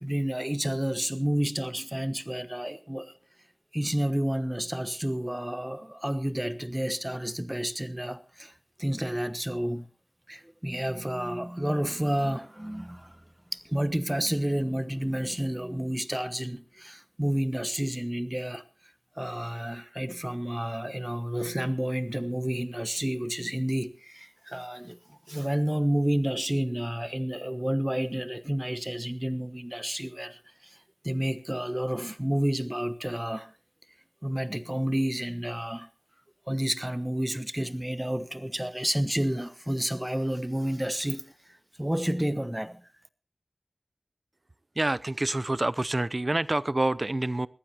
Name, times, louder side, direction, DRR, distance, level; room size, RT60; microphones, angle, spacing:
voice 1, 0.0-3.1 3.7-8.5 8.8-9.9 10.3-13.2 13.5-18.6 19.2-30.8 31.0-33.5 34.2-35.9 36.5-41.3 41.8-42.8, right 1 dB, 15° right, 1.2 m, -30 dB
voice 2, 44.8-47.5, right 2 dB, 45° right, 0.6 m, -27 dB
20.5 x 15.0 x 3.0 m
wide cardioid pair, 45°, 0 cm